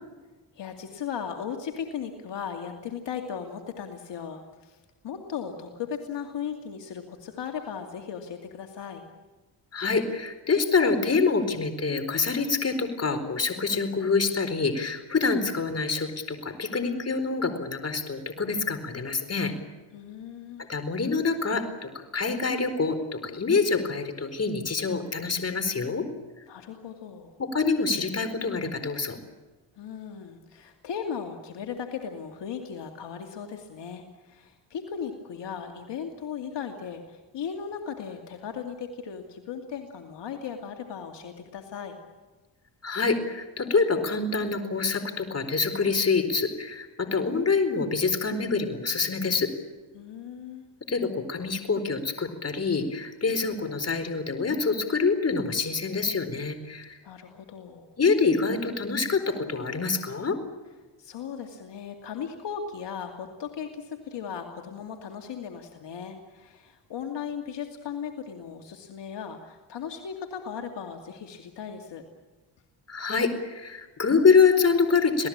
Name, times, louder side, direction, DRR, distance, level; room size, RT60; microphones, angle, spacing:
voice 1, 0.5-4.8 5.0-9.0 19.9-20.7 26.5-27.4 29.8-42.0 49.9-50.7 57.0-57.9 61.0-72.0, left 7 dB, 65° left, 4 dB, 2.6 m, -37 dB
voice 2, 9.7-19.5 20.7-26.0 27.4-29.2 42.8-49.5 50.9-57.0 58.0-60.4 72.9-75.3, left 4 dB, 30° left, 9 dB, 4.3 m, -26 dB
27.0 x 18.0 x 8.8 m, 1.2 s
cardioid pair, 85°, 46 cm